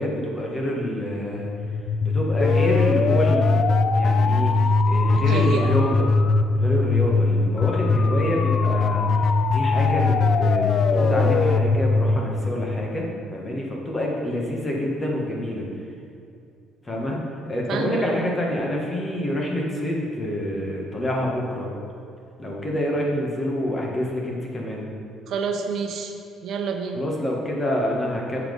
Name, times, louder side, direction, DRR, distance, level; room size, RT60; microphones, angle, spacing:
voice 1, 0.0-1.5 2.0-3.4 4.0-4.6 4.9-6.1 6.6-15.7 16.8-17.2 17.5-21.7 22.4-24.9 26.9-28.4, left 1 dB, 25° left, -2 dB, 1.6 m, -27 dB
sound 1, 1.4-13.2, left 3 dB, 45° left, 0.4 m, -21 dB
voice 2, 5.1-5.8 17.1-17.2 17.7-18.1 25.3-26.1 26.4-27.0, right 6 dB, 65° right, 4 dB, 0.7 m, -28 dB
7.5 x 5.8 x 5.4 m, 2.4 s
cardioid pair, 115°, 0 cm